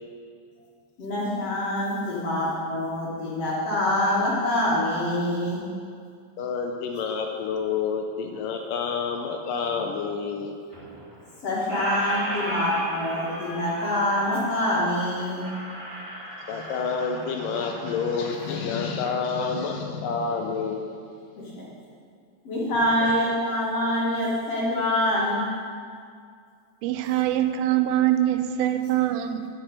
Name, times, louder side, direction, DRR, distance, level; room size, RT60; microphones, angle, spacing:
voice 1, 1.0-5.6 11.4-15.4 21.4-21.5 22.4-25.5, left 1 dB, 45° left, -6 dB, 2.7 m, -25 dB
voice 2, 6.4-10.5 16.5-20.9 23.0-23.1, left 5 dB, 80° left, 3 dB, 2.2 m, -28 dB
Squeak, 10.7-11.3 11.6-19.2, right 1 dB, 20° right, 1.8 m, -35 dB
voice 3, 26.8-29.5, right 12 dB, 90° right, 9 dB, 2.4 m, -23 dB
10.0 x 6.7 x 6.6 m, 2.2 s
omnidirectional pair, 4.2 m